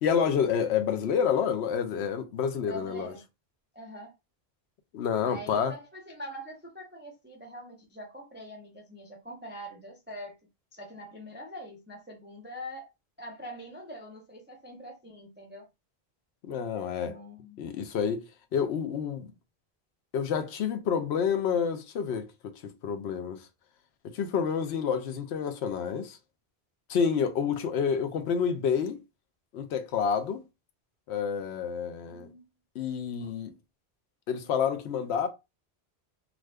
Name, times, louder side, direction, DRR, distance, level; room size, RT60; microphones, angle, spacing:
voice 1, 0.0-3.1 4.9-5.7 16.4-17.2 17.6-18.2 18.5-19.3 20.1-23.5 24.0-26.2 26.9-29.0 29.5-30.4 31.1-32.3 32.7-33.5 34.3-35.3, left 7 dB, 85° left, 0.9 m, -29 dB
voice 2, 2.7-3.2 3.7-4.1 5.2-10.4 10.7-12.9 13.2-15.7 17.0-17.6 32.1-32.5, equal, 15° right, 0.4 m, -44 dB
2.5 x 2.4 x 3.3 m
omnidirectional pair, 1.1 m